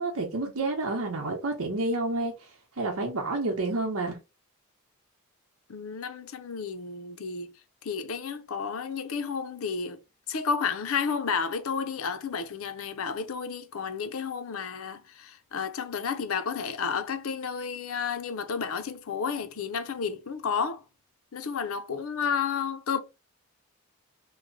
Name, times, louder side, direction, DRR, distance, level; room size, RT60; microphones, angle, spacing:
voice 1, 0.0-2.3 2.8-4.2, right 2 dB, 85° right, 0.9 m, -29 dB
voice 2, 5.7-7.5 7.8-10.0 10.3-20.8 21.3-23.0, left 6 dB, 80° left, 0.5 m, -31 dB
3.1 x 2.1 x 3.8 m
head